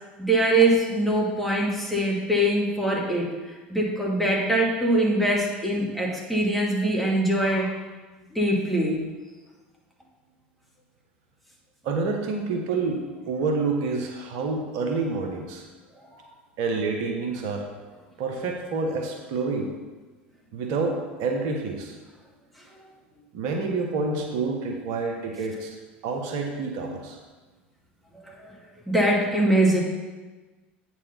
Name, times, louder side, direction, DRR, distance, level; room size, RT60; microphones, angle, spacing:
voice 1, 0.2-7.8 8.3-9.0 16.1-16.3 28.1-28.5 28.9-29.8, right 1 dB, ahead, -3 dB, 2.2 m, -23 dB
voice 2, 11.8-15.6 16.6-17.7 18.2-19.7 20.5-21.9 23.3-25.7 26.0-27.2, right 4 dB, 60° right, 2 dB, 1.1 m, -28 dB
8.7 x 4.5 x 5.7 m, 1.3 s
hypercardioid pair, 80°, 6 cm